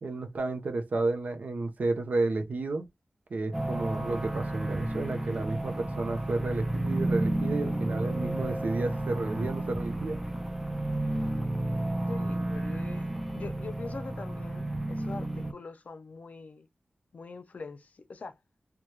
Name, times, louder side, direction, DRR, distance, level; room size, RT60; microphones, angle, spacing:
voice 1, 0.0-2.9 3.3-10.2, right 3 dB, 70° right, 0.6 m, -31 dB
sound 1, 3.5-15.5, right 1 dB, 10° right, 0.5 m, -32 dB
voice 2, 12.1-16.7 17.1-18.4, left 4 dB, 60° left, 0.5 m, -43 dB
2.2 x 2.2 x 2.9 m
wide cardioid pair, 110°, 3 cm